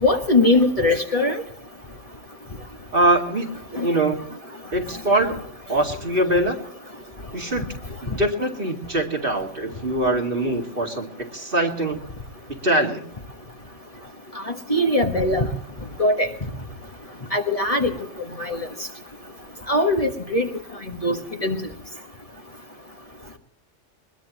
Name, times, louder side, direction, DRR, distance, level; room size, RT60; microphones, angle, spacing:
voice 1, 0.0-1.4 3.7-3.9 14.7-15.5 16.0-16.3 17.3-17.9 18.4-18.7 19.7-20.5 20.9-21.6, left 2 dB, 30° left, 3 dB, 1.5 m, -20 dB
voice 2, 2.9-3.5 3.8-4.2 4.7-5.3 5.7-6.6 7.3-7.6 8.2-11.1 11.3-12.0 12.6-13.0, right 1 dB, 50° right, 2 dB, 2.5 m, -22 dB
21.0 x 21.0 x 3.0 m, 0.70 s
omnidirectional pair, 1.2 m